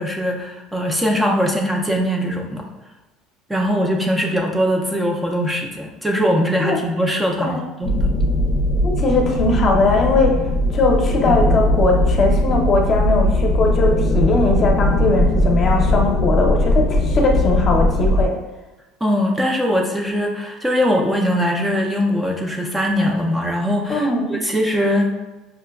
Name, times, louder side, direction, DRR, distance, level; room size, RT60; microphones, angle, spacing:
voice 1, 0.0-2.7 3.5-8.1 19.0-25.3, equal, 10° right, 0 dB, 0.4 m, -21 dB
sound 1, 7.8-18.2, left 1 dB, 80° left, 0.5 m, -19 dB
voice 2, 8.8-10.4 10.7-18.4 23.9-24.4, left 3 dB, 40° left, 1 dB, 0.6 m, -19 dB
5.6 x 2.2 x 2.3 m, 1.1 s
cardioid pair, 120°, 0 cm